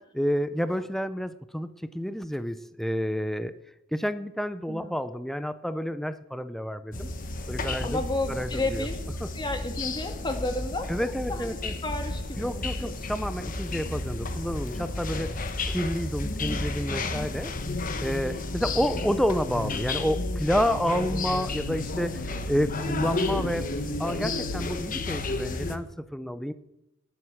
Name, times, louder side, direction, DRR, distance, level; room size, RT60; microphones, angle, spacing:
voice 1, 0.1-3.5 3.9-7.1 7.5-8.0 8.3-8.9 9.2-9.3 10.9-11.7 12.4-15.4 15.6-17.5 18.0-23.7 24.0-26.5, equal, ahead, 11 dB, 0.5 m, -29 dB
sound 1, 6.9-25.8, left 2 dB, 45° left, 1.2 m, -32 dB
voice 2, 7.8-9.0 9.3-11.6 11.8-13.0 18.9-19.1, left 2 dB, 25° left, 5 dB, 1.8 m, -32 dB
19.0 x 7.9 x 6.3 m, 0.88 s
head